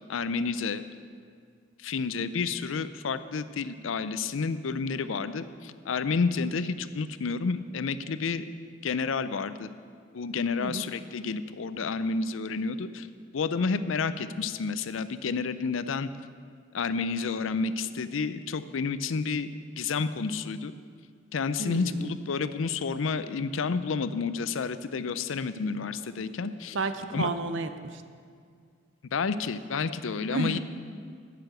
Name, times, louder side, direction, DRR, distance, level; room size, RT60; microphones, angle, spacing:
voice 1, 0.1-0.8 1.8-8.4 8.8-9.7 10.1-13.1 13.3-16.1 16.7-19.5 19.8-20.7 21.3-26.8 27.1-27.3 29.1-30.6, left 4 dB, 85° left, 13 dB, 0.5 m, -30 dB
voice 2, 21.6-22.1 26.7-28.0 30.3-30.6, right 3 dB, 75° right, 10 dB, 0.7 m, -31 dB
10.5 x 6.8 x 7.8 m, 2.1 s
head